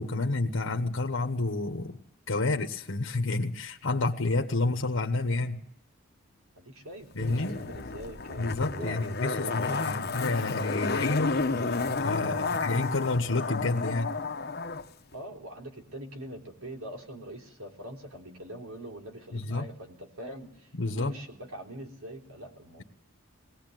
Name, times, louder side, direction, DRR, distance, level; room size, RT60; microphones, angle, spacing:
voice 1, 0.0-2.0 2.3-5.6 7.1-7.6 8.4-14.1 19.3-19.7 20.7-21.1, left 2 dB, 65° left, 4 dB, 1.2 m, -29 dB
voice 2, 6.6-10.4 12.2-12.5 15.1-22.8, right 1 dB, 85° right, 3 dB, 3.5 m, -43 dB
Zipper (clothing), 7.2-14.8 15.1-15.2, left 4 dB, 45° left, 0.9 m, -32 dB
20.5 x 18.0 x 9.2 m, 0.73 s
head